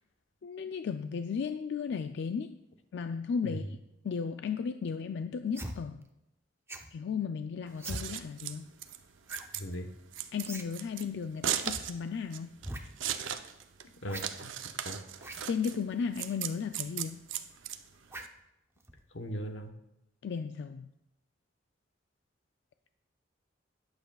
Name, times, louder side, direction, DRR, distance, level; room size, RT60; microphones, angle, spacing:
voice 1, 0.4-2.6 2.9-3.8 4.0-6.0 6.9-8.7 10.3-12.6 15.4-17.2 20.2-20.9, left 6 dB, 65° left, 9 dB, 0.4 m, -35 dB
sound 1, 5.5-5.8 6.7-6.9 7.8-8.0 9.3-9.5 9.7-9.8 10.4-10.7 10.9-11.0 11.6-11.8 12.6-12.8 14.1-14.3 15.2-15.4 16.2-16.4 18.1-18.4 18.8-19.0, right 1 dB, 15° right, 0.7 m, -41 dB
Scissors, 7.7-18.3, right 10 dB, 85° right, 0.6 m, -38 dB
voice 2, 14.0-14.5 14.8-15.0 19.1-19.7, equal, 90° left, 5 dB, 1.1 m, -38 dB
20.5 x 7.9 x 2.3 m, 0.90 s
head